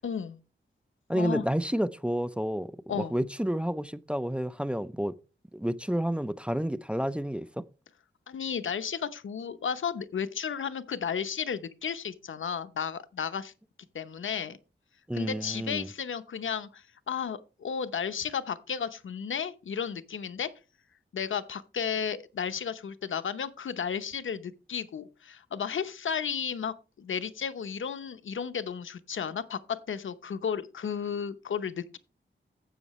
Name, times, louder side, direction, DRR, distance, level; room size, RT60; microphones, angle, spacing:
voice 1, 0.0-0.4 1.1-1.4 2.9-3.2 8.3-13.5 13.9-14.6 15.1-20.5 21.1-32.0, left 7 dB, 80° left, 0.8 m, -33 dB
voice 2, 1.1-5.1 5.5-7.6 15.1-15.9, equal, 5° right, 0.5 m, -30 dB
12.5 x 8.1 x 3.1 m
wide cardioid pair, 100°, 20 cm